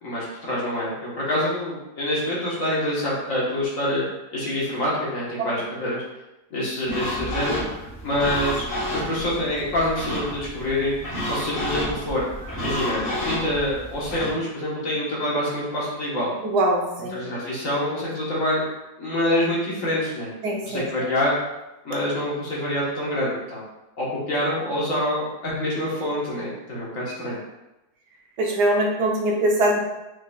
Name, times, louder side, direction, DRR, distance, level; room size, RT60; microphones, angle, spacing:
voice 1, 0.0-4.0 4.3-6.0 6.5-7.6 8.0-10.9 11.2-12.3 12.6-16.3 17.1-18.6 19.0-20.3 20.6-21.3 21.8-23.6 24.0-27.4, left 1 dB, 55° left, -6 dB, 1.6 m, -26 dB
sound 1, 6.9-14.3, equal, 25° left, 1.3 m, -30 dB
voice 2, 16.4-17.2 20.4-20.8 28.4-29.8, right 1 dB, 80° right, -1 dB, 1.4 m, -22 dB
4.6 x 4.5 x 2.3 m, 0.97 s
omnidirectional pair, 1.7 m